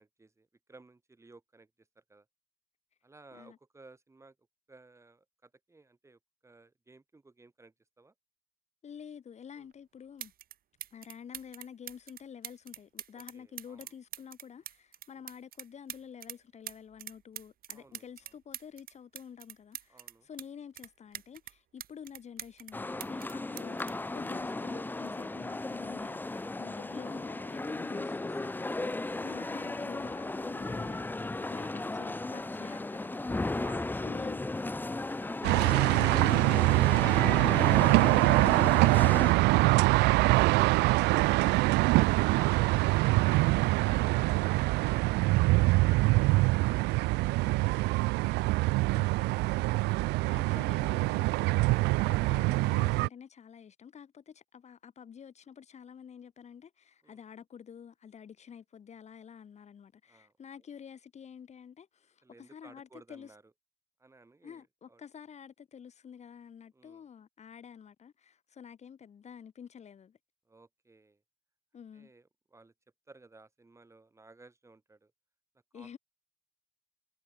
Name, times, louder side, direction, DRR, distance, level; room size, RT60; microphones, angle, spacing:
voice 1, 0.0-2.3 3.0-4.4 4.7-8.1 9.6-9.7 13.1-13.9 15.1-15.2 17.7-18.3 19.9-20.3 30.8-31.1 33.1-33.9 57.0-57.2 60.1-60.3 62.2-63.4 64.0-65.0 66.7-67.1 70.5-71.2 71.9-72.7 73.1-75.1 75.7-76.0, right 3 dB, 15° right, 5.6 m, -57 dB
voice 2, 8.8-10.3 10.9-33.5 34.0-34.4 35.4-36.4 36.7-37.0 43.9-44.4 48.9-49.3 49.9-63.3 64.4-70.2 71.7-72.1 75.7-76.0, left 7 dB, 40° left, 3.2 m, -49 dB
sound 1, 9.7-9.8 10.2-10.5 10.8-16.4 16.7-20.5 20.8-22.7 23.0-24.8 25.8-26.0, right 11 dB, 60° right, 5.2 m, -44 dB
sound 2, 22.7-39.3, left 2 dB, 10° left, 1.1 m, -35 dB
sound 3, 35.4-53.1, right 22 dB, 85° right, 0.4 m, -24 dB
cardioid pair, 110°, 17 cm